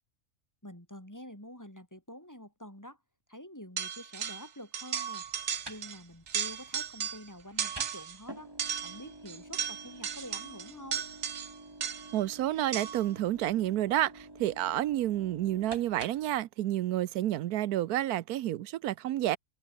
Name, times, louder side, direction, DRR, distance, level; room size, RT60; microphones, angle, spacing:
voice 1, 0.6-3.0 3.3-5.2 5.7-11.1, equal, 10° left, 4.5 m, -47 dB
sound 1, 3.8-4.5 4.7-6.0 6.3-7.3 7.6-8.2 8.6-12.2 12.7-13.1, right 7 dB, 65° right, 1.6 m, -35 dB
sound 2, 5.2-16.4, right 1 dB, 15° right, 2.7 m, -50 dB
voice 2, 12.1-19.4, right 13 dB, 85° right, 1.2 m, -30 dB
omnidirectional pair, 1.6 m